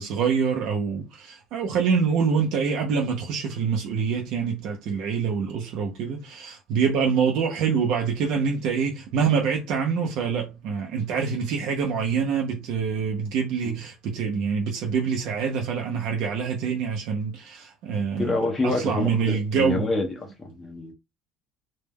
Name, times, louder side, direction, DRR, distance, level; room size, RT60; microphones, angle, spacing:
voice 1, 0.0-18.3 18.6-19.9, right 6 dB, 55° right, 0.4 m, -25 dB
voice 2, 18.2-20.9, left 2 dB, 10° left, 0.3 m, -27 dB
2.1 x 2.1 x 3.2 m
cardioid pair, 175°, 0 cm